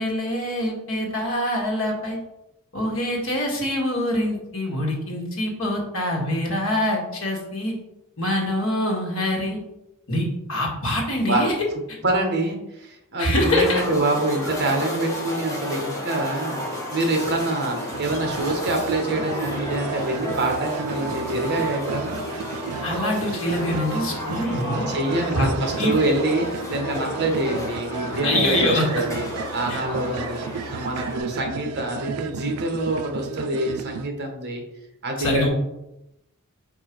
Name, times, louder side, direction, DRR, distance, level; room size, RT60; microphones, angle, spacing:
voice 1, 0.0-2.2 2.7-7.7 8.2-9.6 10.1-11.5 11.9-12.0 13.2-13.8 22.8-24.9 25.3-25.5 25.8-25.9 28.2-29.0 29.7-29.8 35.2-35.5, left 1 dB, 65° left, -1 dB, 1.7 m, -24 dB
voice 2, 12.0-22.2 24.9-29.3 29.5-34.6 35.0-35.5, right 2 dB, 50° right, 2 dB, 1.3 m, -25 dB
sound 1, 13.3-31.2, equal, 15° left, 1.4 m, -32 dB
sound 2, 17.9-34.1, right 7 dB, 75° right, 0.3 m, -34 dB
4.8 x 4.5 x 4.6 m, 0.90 s
head